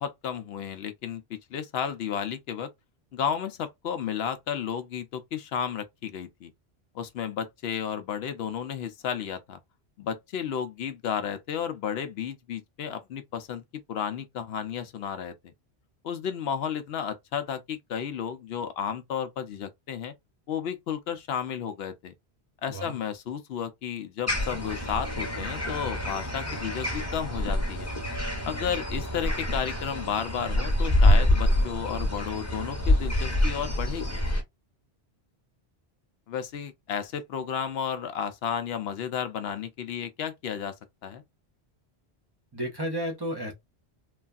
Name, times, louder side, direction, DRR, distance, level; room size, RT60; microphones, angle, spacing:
voice 1, 0.0-2.7 3.1-6.5 6.9-9.6 10.0-13.6 13.9-15.5 16.0-20.1 20.5-22.1 22.6-27.9 28.4-34.2 36.3-40.7 41.0-41.2, left 8 dB, 75° left, 0.8 m, -33 dB
sound 1, 24.3-34.4, left 1 dB, 15° left, 0.8 m, -26 dB
voice 2, 42.5-43.5, equal, 25° right, 0.7 m, -32 dB
3.2 x 2.3 x 2.3 m
omnidirectional pair, 1.1 m